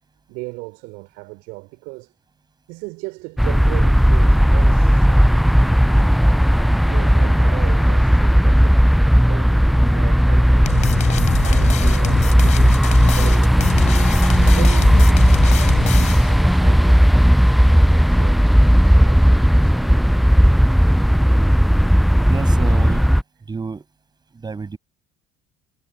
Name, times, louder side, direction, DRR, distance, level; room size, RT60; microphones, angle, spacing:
voice 1, 0.3-2.1 2.7-5.6 5.9-6.2 6.6-8.9 9.2-10.8 11.4-14.2 14.5-20.0, right 26 dB, 65° right, 4.4 m, -37 dB
sound 1, 3.4-23.2, equal, ahead, 0.3 m, -15 dB
sound 2, 10.7-16.4, left 9 dB, 45° left, 4.4 m, -26 dB
voice 2, 22.2-23.2 23.5-23.8 24.3-24.8, right 4 dB, 25° right, 7.4 m, -28 dB
figure-of-eight pair, 60°, 17 cm